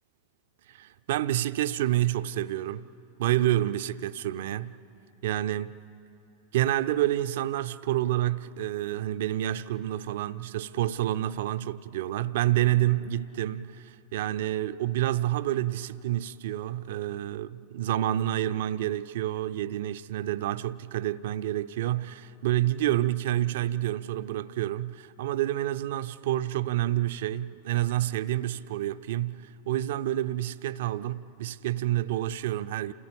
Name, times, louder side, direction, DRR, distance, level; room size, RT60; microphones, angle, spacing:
voice 1, 0.7-2.9 3.2-4.8 5.2-5.8 6.5-32.9, right 13 dB, 55° right, 0.5 m, -28 dB
29.0 x 15.5 x 8.6 m
figure-of-eight pair, 90°, 0 cm